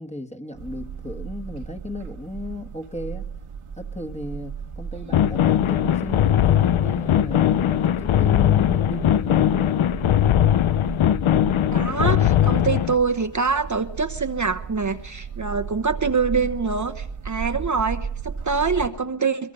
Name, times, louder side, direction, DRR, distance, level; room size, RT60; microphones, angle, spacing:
voice 1, 0.0-3.2 3.8-9.7, left 2 dB, 15° left, 7 dB, 1.5 m, -35 dB
sound 1, 0.5-18.9, right 7 dB, 85° right, 1.9 m, -35 dB
sound 2, 5.1-12.9, left 11 dB, 70° left, 0.7 m, -20 dB
voice 2, 11.7-19.5, right 5 dB, 35° right, 6 dB, 1.0 m, -25 dB
22.0 x 22.0 x 5.4 m, 0.78 s
cardioid pair, 70°, 50 cm